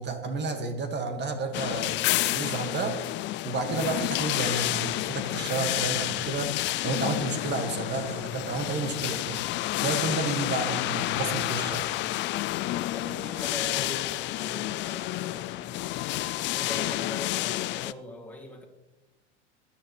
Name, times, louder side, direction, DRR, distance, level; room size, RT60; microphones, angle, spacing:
voice 1, 0.0-3.0 3.4-9.4 9.8-11.9, right 3 dB, 30° right, 2.0 m, -31 dB
sound 1, 1.5-17.9, left 17 dB, 35° left, 0.4 m, -30 dB
voice 2, 12.7-15.8 16.5-18.7, equal, 5° left, 2.6 m, -41 dB
20.5 x 10.5 x 3.3 m
hypercardioid pair, 95°, 35 cm